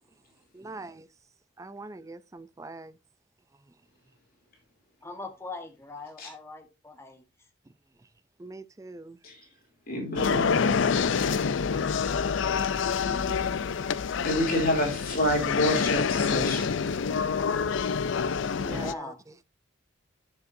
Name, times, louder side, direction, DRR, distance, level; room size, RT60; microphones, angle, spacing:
voice 1, 0.5-1.1 1.6-3.0 3.7-3.8 8.0-8.1 8.4-9.2 18.6-19.1, right 2 dB, 15° right, 0.3 m, -43 dB
voice 2, 5.0-7.5 18.6-19.2, left 2 dB, 15° left, 1.3 m, -41 dB
voice 3, 9.9-10.6 14.2-16.8, left 1 dB, 45° left, 3.0 m, -28 dB
sound 1, 10.2-18.9, left 6 dB, 70° left, 0.5 m, -27 dB
9.3 x 6.8 x 2.6 m
head